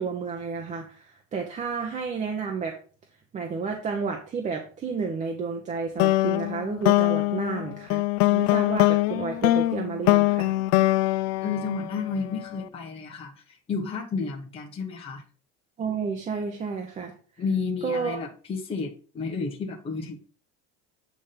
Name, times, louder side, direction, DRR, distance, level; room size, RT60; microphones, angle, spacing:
voice 1, 0.0-2.8 3.3-8.0 8.3-10.5 15.8-17.1 17.8-18.2, right 5 dB, 25° right, 2 dB, 0.9 m, -31 dB
sound 1, 6.0-12.4, left 17 dB, 55° left, 0.5 m, -23 dB
voice 2, 11.4-15.2 17.4-20.2, left 5 dB, 20° left, -2 dB, 1.2 m, -31 dB
8.2 x 3.6 x 5.8 m, 0.40 s
cardioid pair, 160°, 29 cm